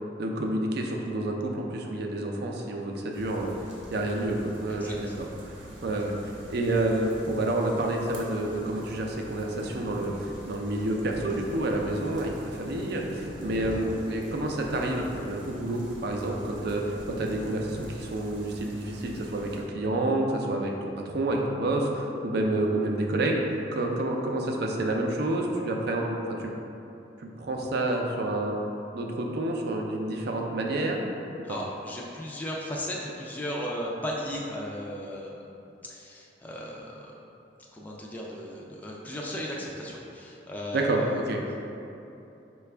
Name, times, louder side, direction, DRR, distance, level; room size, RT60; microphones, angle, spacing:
voice 1, 0.2-3.5 3.9-5.1 5.8-23.4 23.7-26.5 27.2-28.5 28.9-31.0 31.5-31.6 40.7-41.0 41.3-41.4, right 1 dB, 60° right, 1 dB, 0.4 m, -29 dB
sound 1, 3.1-19.6, equal, 90° right, 0.8 m, -43 dB
voice 2, 4.7-5.1 31.4-35.5 35.8-37.1 37.7-41.2, equal, 10° left, -4 dB, 0.3 m, -36 dB
4.8 x 2.3 x 3.3 m, 2.9 s
head